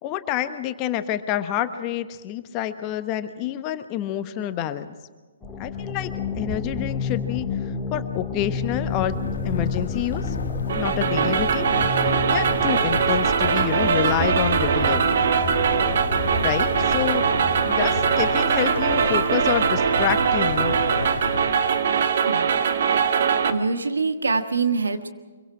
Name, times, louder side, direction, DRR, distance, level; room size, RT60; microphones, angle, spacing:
voice 1, 0.0-4.9 5.6-6.1 6.4-7.5 7.9-9.2 9.4-10.3 10.8-11.7 12.3-15.1 16.4-17.3 17.6-20.8, left 11 dB, 25° left, 10 dB, 1.1 m, -27 dB
sound 1, 5.4-18.1, left 3 dB, 5° left, 2.2 m, -30 dB
sound 2, 8.5-21.9, left 4 dB, 60° left, 1.3 m, -32 dB
sound 3, 10.7-23.5, right 7 dB, 50° right, 1.4 m, -22 dB
voice 2, 23.5-25.1, right 4 dB, 65° right, 7 dB, 1.7 m, -24 dB
25.5 x 23.5 x 4.8 m, 1.3 s
figure-of-eight pair, 130°, 0 cm